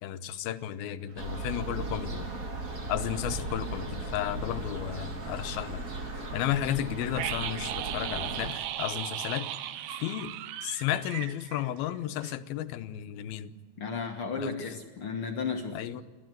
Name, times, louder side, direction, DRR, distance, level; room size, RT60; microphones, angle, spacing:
voice 1, 0.0-2.3 2.9-5.8 6.1-9.5 10.0-10.3 10.6-13.5 14.3-14.5 15.7-16.0, left 11 dB, 85° left, 2.7 m, -33 dB
sound 1, 1.1-6.5, right 2 dB, 50° right, 4.4 m, -48 dB
sound 2, 1.2-8.5, right 2 dB, 35° right, 1.5 m, -37 dB
sound 3, 7.1-12.0 12.2-12.3, right 12 dB, 90° right, 2.8 m, -36 dB
voice 2, 13.8-15.8, left 5 dB, 50° left, 1.7 m, -34 dB
29.0 x 12.5 x 9.2 m
omnidirectional pair, 4.2 m